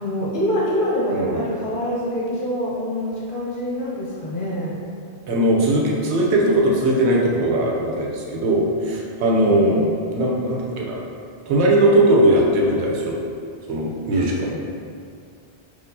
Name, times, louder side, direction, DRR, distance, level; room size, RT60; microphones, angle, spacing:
voice 1, 0.0-4.8 9.3-9.9 14.1-14.2, equal, 55° left, -7 dB, 0.9 m, -25 dB
voice 2, 1.1-1.5 5.3-9.7 10.1-11.0 11.5-13.2 13.7-14.5, right 1 dB, 90° right, -2 dB, 0.9 m, -19 dB
4.3 x 2.4 x 2.6 m, 2.3 s
omnidirectional pair, 1.1 m